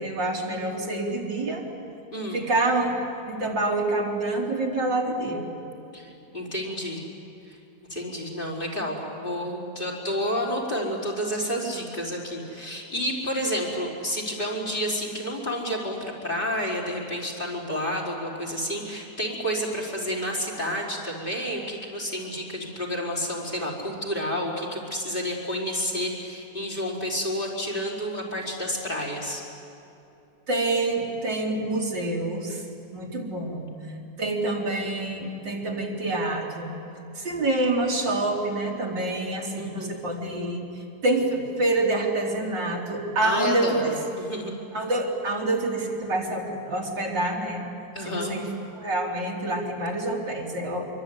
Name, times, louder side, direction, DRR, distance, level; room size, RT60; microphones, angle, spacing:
voice 1, 0.0-1.6 2.3-2.9 3.3-5.4 30.5-32.6 32.9-33.7 34.2-36.7 37.1-40.6 41.0-43.9 44.7-47.6 48.1-48.5 48.7-50.9, right 2 dB, 85° right, -2 dB, 4.3 m, -27 dB
voice 2, 2.1-2.4 5.9-7.0 7.5-7.6 7.9-29.4 39.6-40.0 43.2-44.6 47.9-48.3, equal, 30° left, -2 dB, 5.0 m, -30 dB
26.0 x 23.5 x 9.7 m, 2.8 s
omnidirectional pair, 1.9 m